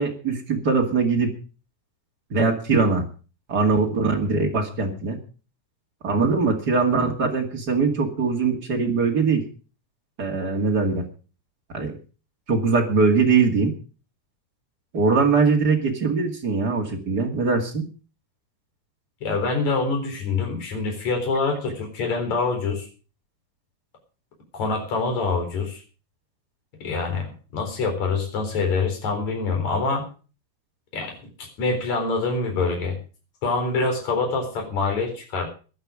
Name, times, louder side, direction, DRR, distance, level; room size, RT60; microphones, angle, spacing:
voice 1, 0.0-1.3 2.3-3.0 3.5-5.2 6.0-9.4 10.2-11.0 11.7-11.9 12.5-13.7 14.9-17.8, right 4 dB, 30° right, 2 dB, 2.0 m, -21 dB
voice 2, 19.2-22.9 24.5-25.8 26.8-30.1 30.9-33.0 33.4-35.5, left 4 dB, 45° left, 4 dB, 5.1 m, -25 dB
16.0 x 11.5 x 5.0 m, 0.37 s
omnidirectional pair, 4.5 m